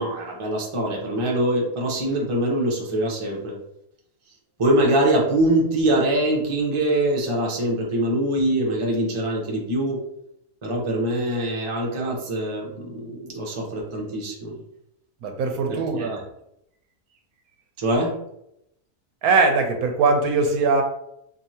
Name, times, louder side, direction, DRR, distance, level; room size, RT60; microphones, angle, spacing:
voice 1, 0.0-3.6 4.6-10.0 10.6-14.6 15.7-16.1 17.8-18.1, right 1 dB, 30° right, -2 dB, 0.6 m, -23 dB
voice 2, 15.2-16.3 19.2-20.8, right 3 dB, 75° right, 4 dB, 1.1 m, -21 dB
4.7 x 2.7 x 2.8 m, 0.80 s
omnidirectional pair, 1.6 m